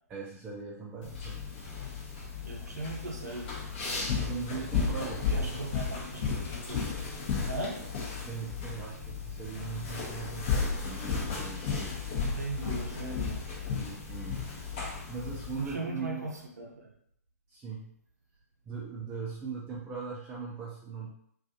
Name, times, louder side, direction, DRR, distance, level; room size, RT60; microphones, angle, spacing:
voice 1, 0.1-1.5 2.7-2.8 4.1-5.9 8.3-12.0 13.7-16.3 17.5-17.9 18.7-21.1, right 5 dB, 15° right, -4 dB, 0.4 m, -40 dB
sound 1, 1.0-15.7, left 5 dB, 40° left, 0.7 m, -34 dB
voice 2, 2.4-3.5 5.2-6.8 7.5-7.8 12.4-13.9 15.6-16.9, right 2 dB, 75° right, 0 dB, 0.7 m, -39 dB
2.5 x 2.3 x 2.6 m, 0.69 s
figure-of-eight pair, 125°, 9 cm